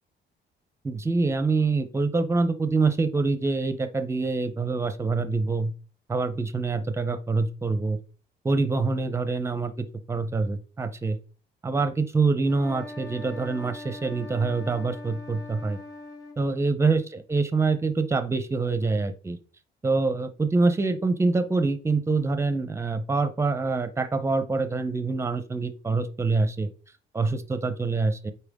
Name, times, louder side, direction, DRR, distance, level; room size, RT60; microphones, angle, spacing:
voice 1, 0.8-5.7 6.1-8.0 8.4-11.2 11.6-15.8 16.4-19.4 19.8-26.7 27.1-28.3, right 3 dB, 15° right, 10 dB, 0.7 m, -25 dB
sound 1, 12.4-16.4, left 2 dB, 20° left, 1.8 m, -41 dB
8.8 x 4.4 x 3.6 m, 0.38 s
cardioid pair, 150°, 19 cm